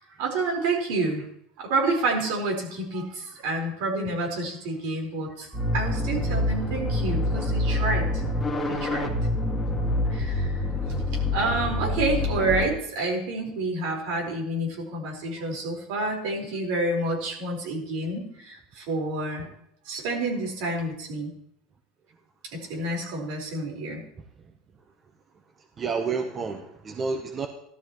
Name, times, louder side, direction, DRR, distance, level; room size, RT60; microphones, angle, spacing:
voice 1, 0.2-1.2 1.6-8.2 8.7-9.1 10.1-10.7 11.3-19.5 19.8-21.3 22.5-24.0, right 2 dB, 75° right, 0 dB, 4.5 m, -29 dB
sound 1, 5.5-12.6, left 1 dB, 5° left, 2.0 m, -26 dB
voice 2, 25.8-27.5, right 4 dB, 25° right, 5 dB, 0.9 m, -30 dB
16.0 x 12.5 x 3.1 m, 0.73 s
supercardioid pair, 135°, 0 cm